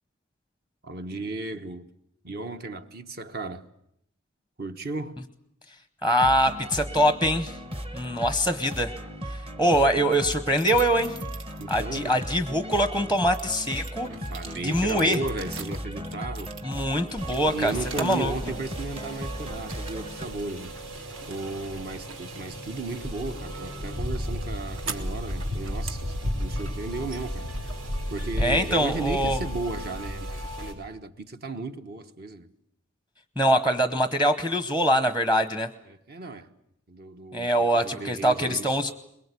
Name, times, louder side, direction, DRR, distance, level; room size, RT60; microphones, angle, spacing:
voice 1, 0.8-1.8 2.2-3.6 4.6-5.2 11.6-12.2 14.1-16.5 17.5-20.7 21.3-27.5 28.1-32.5 35.9-36.5 36.9-38.7, right 2 dB, 45° right, 1.2 m, -35 dB
voice 2, 6.0-7.5 7.9-8.9 9.6-11.1 11.7-14.1 14.6-15.2 16.6-18.3 28.4-29.4 33.4-35.7 37.3-38.9, equal, 5° right, 0.9 m, -23 dB
sound 1, 6.2-20.3, equal, 25° right, 1.2 m, -36 dB
sound 2, 10.1-12.1 12.6-18.3 18.7-19.3 19.7-20.3 20.6-28.5, right 5 dB, 60° right, 1.8 m, -44 dB
sound 3, 17.2-30.7, equal, 80° right, 4.5 m, -34 dB
22.5 x 22.0 x 8.3 m
head